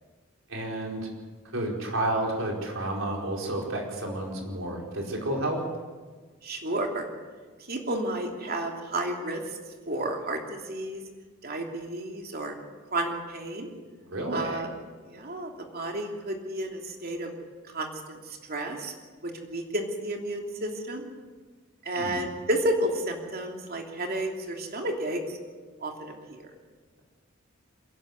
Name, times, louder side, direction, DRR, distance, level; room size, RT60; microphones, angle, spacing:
voice 1, 0.5-1.1 1.5-5.6 14.1-14.6 22.0-22.2, right 1 dB, 70° right, 0 dB, 4.7 m, -30 dB
voice 2, 6.4-7.1 7.7-9.6 9.8-11.0 11.4-12.5 12.9-13.7 14.3-14.7 15.1-17.3 17.6-18.9 19.2-21.0 21.8-25.4 25.8-26.5, right 1 dB, 50° right, 2 dB, 3.0 m, -31 dB
28.5 x 11.5 x 8.1 m, 1.4 s
head